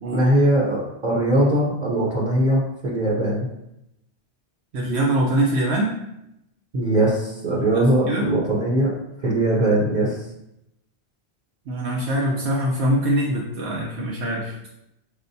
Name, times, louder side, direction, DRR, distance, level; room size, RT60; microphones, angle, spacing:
voice 1, 0.1-3.5 6.7-8.9 9.2-10.2, right 1 dB, 45° right, -5 dB, 0.8 m, -20 dB
voice 2, 4.7-5.9 7.7-8.3 11.7-14.6, right 1 dB, 80° right, -3 dB, 0.9 m, -23 dB
6.5 x 2.2 x 2.6 m, 0.83 s
omnidirectional pair, 1.1 m